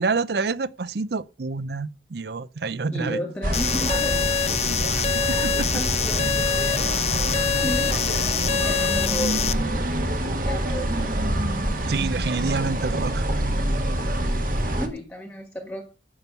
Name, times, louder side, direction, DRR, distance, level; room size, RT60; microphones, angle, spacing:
voice 1, 0.0-3.2 4.6-4.8 5.4-5.5 11.9-13.2, right 4 dB, 65° right, 0.5 m, -27 dB
voice 2, 2.9-4.1 5.5-6.9 7.6-9.5 10.2-11.2 14.7-15.9, equal, 5° left, 1.3 m, -33 dB
sound 1, 3.4-14.9, right 1 dB, 50° right, 1.6 m, -26 dB
sound 2, 3.5-9.5, left 8 dB, 35° left, 0.6 m, -25 dB
10.5 x 7.0 x 6.8 m
head